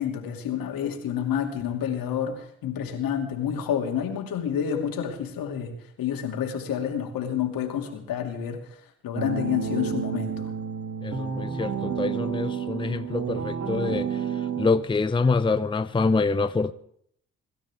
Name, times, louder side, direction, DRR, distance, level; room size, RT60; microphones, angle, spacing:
voice 1, 0.0-8.6 9.0-10.5, left 8 dB, 65° left, 2.6 m, -29 dB
sound 1, 9.1-14.7, right 7 dB, 50° right, 2.3 m, -30 dB
voice 2, 11.0-16.7, left 4 dB, 15° left, 0.7 m, -26 dB
25.0 x 13.0 x 3.5 m
hypercardioid pair, 45°, 37 cm